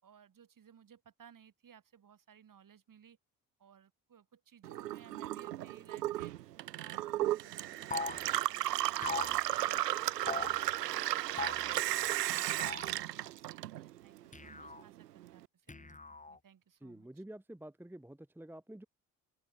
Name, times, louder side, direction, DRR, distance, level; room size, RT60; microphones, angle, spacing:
voice 1, 0.0-3.2 3.6-16.0 16.3-17.1, right 8 dB, 40° right, 4.9 m, -60 dB
Gurgling / Water tap faucet / Sink (filling or washing), 4.6-14.2 14.5-15.4, right 14 dB, 80° right, 0.7 m, -35 dB
sound 1, 7.9-8.2 9.0-9.4 10.3-10.6 11.4-11.7 12.6-12.9 14.3-14.8 15.7-16.4, left 3 dB, 15° left, 2.2 m, -39 dB
voice 2, 16.8-18.9, right 1 dB, 5° right, 1.2 m, -49 dB
open air
figure-of-eight pair, 45°, 48 cm